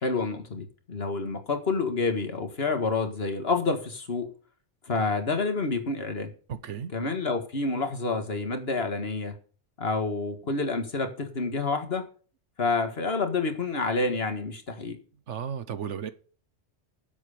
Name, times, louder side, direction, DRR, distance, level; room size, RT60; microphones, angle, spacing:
voice 1, 0.0-4.3 4.9-6.3 6.9-9.3 9.8-12.1 12.6-15.0, left 3 dB, 60° left, 2.0 m, -28 dB
voice 2, 6.5-6.9 15.3-16.1, right 7 dB, 85° right, 1.3 m, -34 dB
11.0 x 7.8 x 5.2 m
omnidirectional pair, 1.2 m